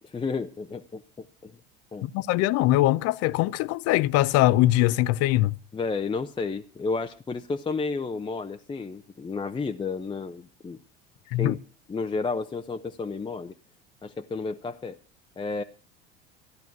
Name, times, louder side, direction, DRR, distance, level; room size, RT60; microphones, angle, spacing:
voice 1, 0.0-1.6 1.9-2.1 5.7-10.8 11.4-11.6 11.9-13.5 14.0-15.0 15.4-15.6, left 4 dB, 15° left, 0.7 m, -32 dB
voice 2, 2.0-5.6 11.3-11.6, left 16 dB, 50° left, 0.6 m, -22 dB
14.0 x 10.5 x 5.9 m
hypercardioid pair, 70°, 32 cm